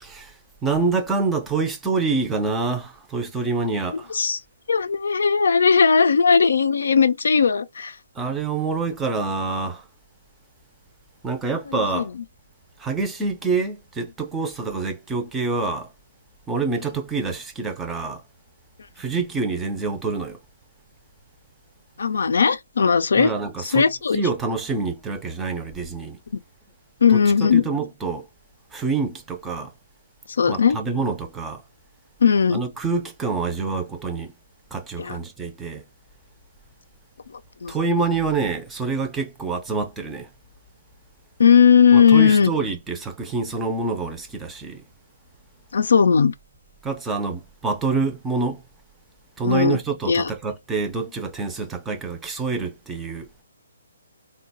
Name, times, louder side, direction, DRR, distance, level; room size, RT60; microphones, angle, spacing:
voice 1, 0.0-0.3 0.6-4.1 8.2-9.8 11.2-12.1 12.8-15.9 16.5-18.2 19.0-20.4 23.1-23.9 24.1-26.2 27.1-28.3 28.7-29.7 30.5-31.6 32.5-34.3 34.7-35.8 37.7-40.3 41.9-44.8 46.8-48.6 49.4-53.3, right 4 dB, 10° right, 0.5 m, -26 dB
voice 2, 4.7-8.0 11.7-12.1 22.0-23.3 23.6-24.2 26.3-26.4 27.0-27.6 30.4-30.8 32.2-32.6 35.0-35.2 37.6-37.7 41.4-42.5 45.7-46.3 49.4-49.8 50.1-50.3, left 6 dB, 75° left, 0.4 m, -17 dB
3.8 x 2.2 x 2.5 m
hypercardioid pair, 155°, 0 cm